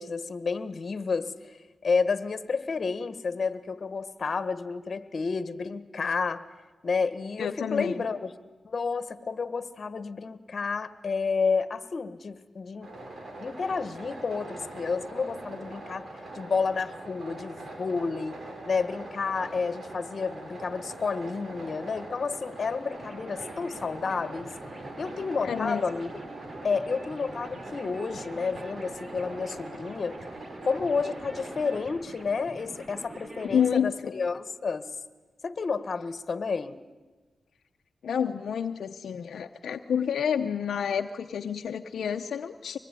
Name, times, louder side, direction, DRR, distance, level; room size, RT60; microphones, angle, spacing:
voice 1, 0.0-6.4 6.8-8.3 8.6-12.9 13.4-16.1 16.3-18.4 18.7-24.5 25.0-26.1 26.6-30.2 30.6-34.9 35.4-36.8, left 4 dB, 55° left, 12 dB, 1.6 m, -30 dB
voice 2, 7.4-8.0 25.4-25.8 33.4-34.1 38.0-42.8, left 8 dB, 85° left, 5 dB, 0.8 m, -29 dB
sound 1, 12.8-31.8, right 2 dB, 60° right, 7.0 m, -42 dB
sound 2, 22.9-33.7, right 2 dB, 40° right, 4.3 m, -45 dB
24.5 x 20.5 x 10.0 m, 1.2 s
cardioid pair, 70°, 0 cm